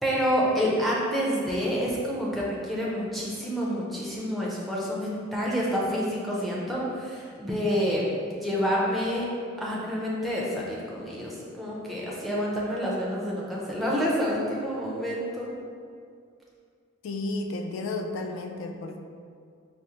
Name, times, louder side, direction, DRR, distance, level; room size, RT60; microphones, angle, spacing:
voice 1, 0.0-8.0 8.3-9.3 9.6-15.5, equal, ahead, -6 dB, 0.5 m, -28 dB
voice 2, 17.0-19.0, left 2 dB, 70° left, 3 dB, 0.3 m, -32 dB
4.8 x 2.0 x 2.8 m, 2.3 s
head